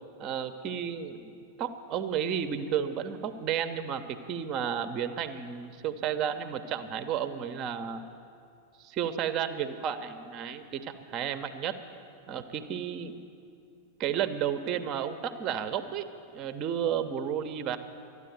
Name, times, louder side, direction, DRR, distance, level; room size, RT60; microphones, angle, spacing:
voice 1, 0.2-1.3 1.6-8.0 8.8-11.8 12.3-13.2 14.0-16.1 16.3-17.8, right 8 dB, 35° right, 10 dB, 0.8 m, -32 dB
13.0 x 9.7 x 9.2 m, 2.4 s
figure-of-eight pair, 90°, 0 cm